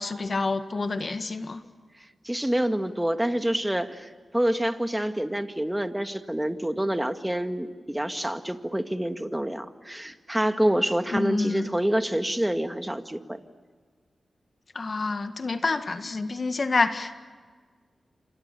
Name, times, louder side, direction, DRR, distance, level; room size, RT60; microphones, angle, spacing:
voice 1, 0.0-1.6 11.1-11.7 14.8-17.2, left 3 dB, 50° left, 9 dB, 1.8 m, -28 dB
voice 2, 2.2-13.4, right 1 dB, 10° right, 8 dB, 2.0 m, -27 dB
29.0 x 26.0 x 6.9 m, 1.5 s
cardioid pair, 50°, 0 cm